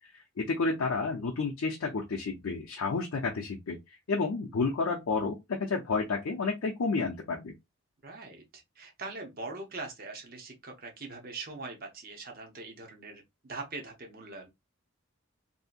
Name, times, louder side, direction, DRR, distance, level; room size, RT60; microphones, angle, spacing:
voice 1, 0.1-7.5, left 4 dB, 75° left, 0.5 m, -31 dB
voice 2, 8.0-14.5, right 3 dB, 45° right, 0.8 m, -42 dB
2.7 x 2.7 x 2.4 m
head